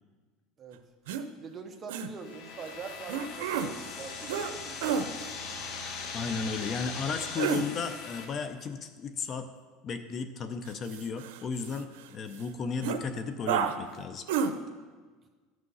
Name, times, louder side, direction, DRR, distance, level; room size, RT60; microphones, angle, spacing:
sound 1, 1.1-1.2 1.9-2.1 3.1-3.7 4.3-4.5 4.8-5.1 7.2-7.6 10.7-12.0 12.4-12.5 12.8-13.0 13.5-13.7 14.3-14.5, right 7 dB, 85° right, 0.7 m, -30 dB
voice 1, 1.4-5.7, right 5 dB, 25° right, 5 dB, 1.0 m, -44 dB
sound 2, 2.1-8.3, left 5 dB, 55° left, 1.5 m, -40 dB
voice 2, 6.1-9.5 9.8-14.2, left 5 dB, 30° left, 9 dB, 0.6 m, -34 dB
12.5 x 6.2 x 5.5 m, 1.4 s
cardioid pair, 150°, 0 cm